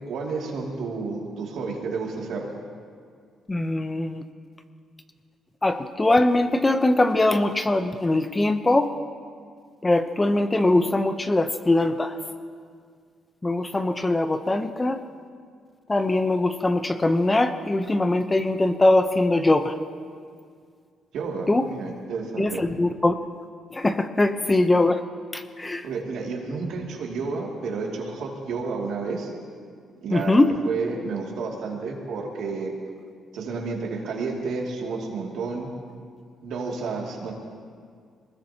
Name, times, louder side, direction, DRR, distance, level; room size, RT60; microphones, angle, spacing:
voice 1, 0.1-2.5 21.1-22.6 25.8-29.3 30.0-30.4 30.6-32.7 33.3-35.7 36.4-37.3, right 4 dB, 80° right, -1 dB, 2.6 m, -31 dB
voice 2, 3.5-4.2 5.6-8.9 9.8-12.1 13.4-15.0 15.9-19.7 21.5-21.7 22.4-23.1 23.7-25.0 25.3-25.8 30.1-30.5, left 2 dB, 20° left, 9 dB, 0.8 m, -21 dB
22.5 x 20.0 x 2.9 m, 2.1 s
cardioid pair, 90°, 0 cm